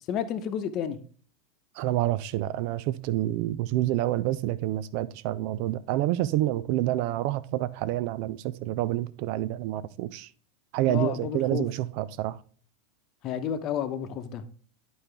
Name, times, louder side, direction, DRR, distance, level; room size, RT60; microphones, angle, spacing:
voice 1, 0.1-1.0 10.9-11.6 13.2-14.4, left 9 dB, 45° left, 0.9 m, -31 dB
voice 2, 1.8-10.3 10.7-12.4, right 15 dB, 55° right, 0.5 m, -28 dB
11.0 x 4.3 x 3.4 m
hypercardioid pair, 90°, 0 cm